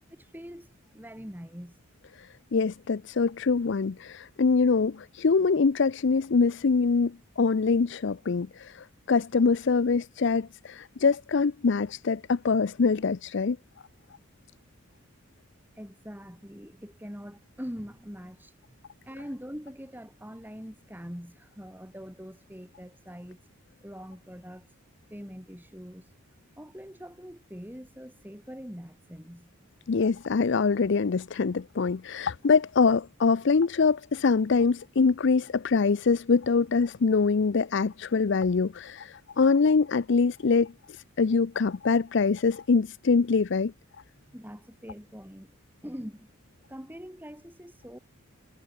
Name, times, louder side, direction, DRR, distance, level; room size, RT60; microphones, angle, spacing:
voice 1, 0.1-0.7 0.9-1.8 15.8-23.4 23.8-24.7 25.1-26.1 26.6-29.5 44.3-45.6 45.8-46.3 46.7-48.0, equal, 10° right, 5.6 m, -43 dB
voice 2, 2.2-13.6 29.9-43.7, left 4 dB, 55° left, 0.5 m, -24 dB
head